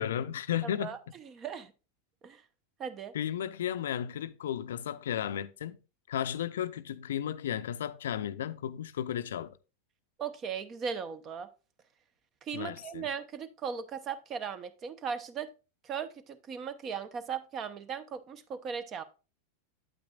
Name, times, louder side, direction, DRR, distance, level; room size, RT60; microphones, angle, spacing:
voice 1, 0.0-0.9 3.1-5.8 6.1-9.6 12.5-13.0, left 10 dB, 70° left, 0.4 m, -34 dB
voice 2, 0.6-1.7 2.2-2.4 2.8-3.1 10.2-11.5 12.4-15.5 15.8-19.0, right 6 dB, 35° right, 0.8 m, -38 dB
8.8 x 8.2 x 2.4 m
hypercardioid pair, 90°, 0 cm